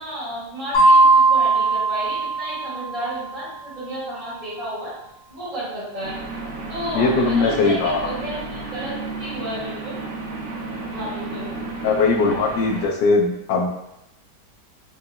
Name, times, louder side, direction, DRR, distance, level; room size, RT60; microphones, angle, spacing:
voice 1, 0.0-4.9 5.3-6.2 6.7-10.0 10.9-11.6, equal, 45° right, -10 dB, 1.8 m, -32 dB
sound 1, 0.7-3.2, right 3 dB, 65° left, 1.9 m, -18 dB
sound 2, 6.0-12.9, right 3 dB, 70° right, 1.1 m, -32 dB
voice 2, 6.9-8.1 11.8-13.7, left 3 dB, 85° left, 1 dB, 1.3 m, -20 dB
3.9 x 2.8 x 2.3 m, 0.83 s
omnidirectional pair, 1.9 m